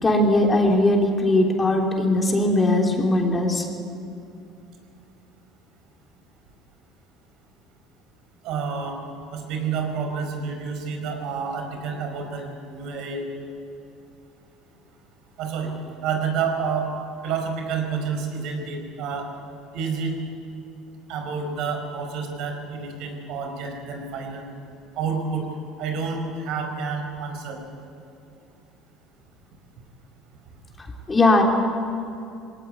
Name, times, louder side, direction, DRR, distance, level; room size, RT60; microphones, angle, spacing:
voice 1, 0.0-3.6 31.1-31.4, left 1 dB, 20° left, 1 dB, 3.4 m, -19 dB
voice 2, 8.4-9.0 9.3-13.2 15.4-15.7 16.0-16.9 17.2-19.3 19.7-20.2 21.1-24.4 24.9-25.5 25.8-27.6, right 5 dB, 65° right, 4 dB, 5.0 m, -29 dB
20.0 x 18.0 x 9.4 m, 2.6 s
supercardioid pair, 110°, 0 cm